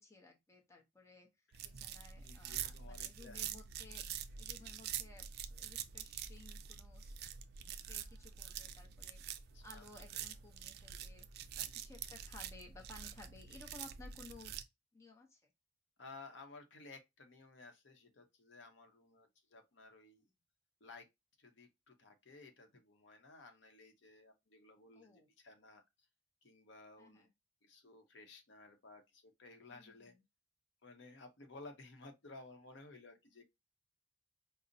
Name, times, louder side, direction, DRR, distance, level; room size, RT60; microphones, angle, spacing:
voice 1, 0.0-4.0 4.3-7.2 7.6-14.5 14.9-15.4 24.9-25.3 27.0-27.3 29.7-30.2, left 3 dB, 15° left, 0.7 m, -58 dB
sound 1, 1.5-14.6, right 9 dB, 55° right, 0.3 m, -46 dB
voice 2, 2.2-3.4 9.0-9.1 9.5-9.8 10.1-10.3 16.0-20.2 20.8-21.1 21.4-25.8 26.4-27.3 27.6-30.1 30.8-33.4, left 3 dB, 70° left, 0.8 m, -56 dB
5.0 x 2.0 x 2.6 m
head